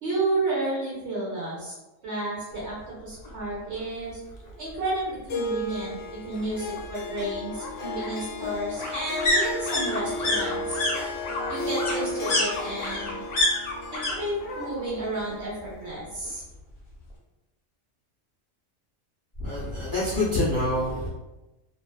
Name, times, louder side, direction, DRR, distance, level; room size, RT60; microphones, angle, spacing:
voice 1, 0.0-1.7 2.0-4.2 4.6-10.8 11.5-13.2 14.1-16.4, right 2 dB, 65° right, -6 dB, 1.0 m, -31 dB
sound 1, 3.2-3.3 3.7-5.1 6.4-14.1 14.4-15.0 15.2-16.3 16.6-16.7, left 1 dB, 60° left, 0.8 m, -29 dB
Harp, 5.3-15.9, left 2 dB, 90° left, 1.0 m, -34 dB
voice 2, 19.4-21.1, left 1 dB, 25° left, -8 dB, 0.4 m, -26 dB
2.5 x 2.3 x 2.3 m, 1.0 s
omnidirectional pair, 1.3 m